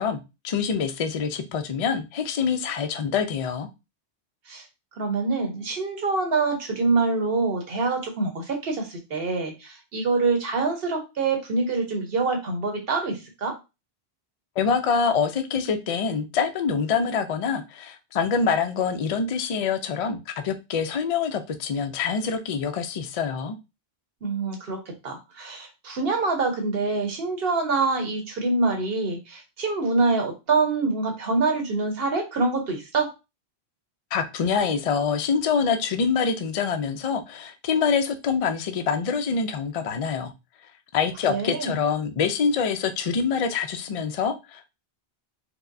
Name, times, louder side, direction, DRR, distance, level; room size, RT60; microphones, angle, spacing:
voice 1, 0.0-3.7 14.6-23.6 34.1-40.3 40.9-44.7, left 6 dB, 60° left, 7 dB, 0.3 m, -25 dB
voice 2, 5.0-13.6 24.2-33.1 41.3-41.7, right 3 dB, 65° right, 3 dB, 1.1 m, -25 dB
4.5 x 2.1 x 2.5 m, 0.26 s
omnidirectional pair, 1.1 m